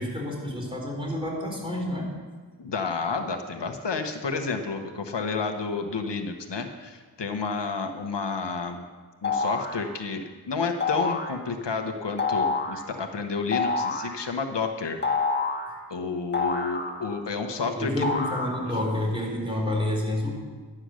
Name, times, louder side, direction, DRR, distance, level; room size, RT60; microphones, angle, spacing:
voice 1, 0.0-2.1 17.8-20.3, left 1 dB, 10° right, -1 dB, 4.0 m, -29 dB
voice 2, 2.6-8.8 9.2-15.0 15.9-18.1, left 4 dB, 75° left, 6 dB, 1.1 m, -30 dB
sound 1, 9.2-9.8 10.8-11.3 12.2-12.8 13.5-14.1 15.0-15.7 16.3-17.3 18.0-18.8, left 4 dB, 25° left, 1.5 m, -27 dB
11.5 x 8.8 x 6.4 m, 1.5 s
wide cardioid pair, 70°, 43 cm